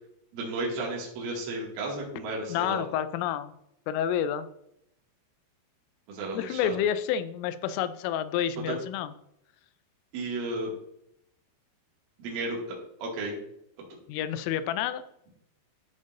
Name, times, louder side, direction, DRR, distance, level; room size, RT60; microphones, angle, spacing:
voice 1, 0.3-2.8 6.1-6.8 8.7-8.8 10.1-10.7 12.2-13.4, right 2 dB, 80° right, -3 dB, 4.6 m, -33 dB
voice 2, 2.5-3.5 3.9-4.5 6.3-9.1 14.1-15.0, left 9 dB, 85° left, 13 dB, 3.2 m, -29 dB
14.5 x 5.5 x 2.6 m, 0.75 s
omnidirectional pair, 5.7 m